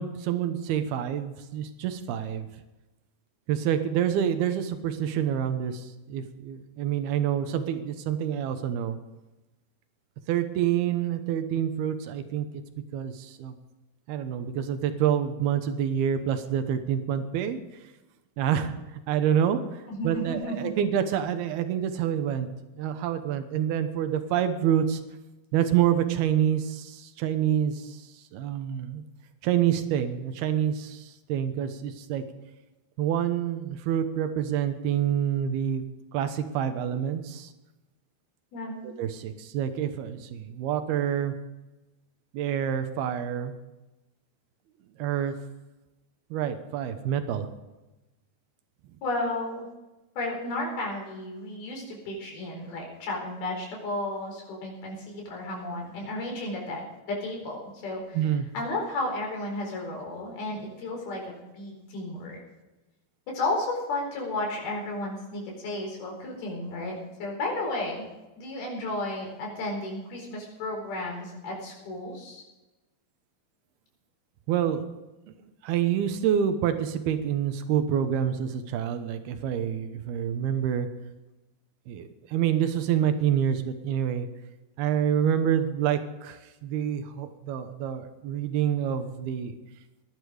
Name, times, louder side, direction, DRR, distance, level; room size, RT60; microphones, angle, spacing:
voice 1, 0.0-2.5 3.5-9.0 10.3-12.5 12.9-13.6 14.1-17.6 18.4-18.7 19.1-22.5 22.8-25.0 25.5-28.1 28.3-29.0 29.4-32.2 33.0-35.8 36.1-37.5 38.8-41.3 42.3-43.5 45.0-45.3 46.3-47.5 58.1-58.5 74.5-74.8 75.6-80.9 81.9-84.3 84.8-89.5, right 9 dB, 90° right, 8 dB, 3.1 m, -27 dB
voice 2, 19.9-20.7 38.5-38.9 49.0-49.7 50.2-56.8 57.1-58.2 58.5-62.4 63.3-68.1 68.4-72.4, left 2 dB, 85° left, 0 dB, 6.4 m, -33 dB
19.0 x 11.5 x 5.0 m, 1.0 s
omnidirectional pair, 4.3 m